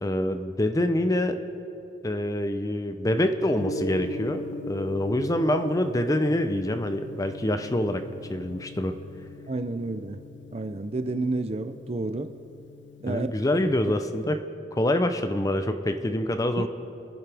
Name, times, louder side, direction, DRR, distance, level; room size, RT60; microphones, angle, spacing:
voice 1, 0.0-1.4 2.0-8.0 8.3-8.9 13.1-14.4 14.7-16.7, left 1 dB, 20° left, 8 dB, 0.6 m, -26 dB
Gong, 3.6-14.2, left 3 dB, 85° left, 0.6 m, -40 dB
voice 2, 9.5-10.2 10.5-12.3 13.0-13.3 16.6-16.7, right 2 dB, 35° right, 10 dB, 0.5 m, -30 dB
28.5 x 10.5 x 3.4 m, 2.9 s
head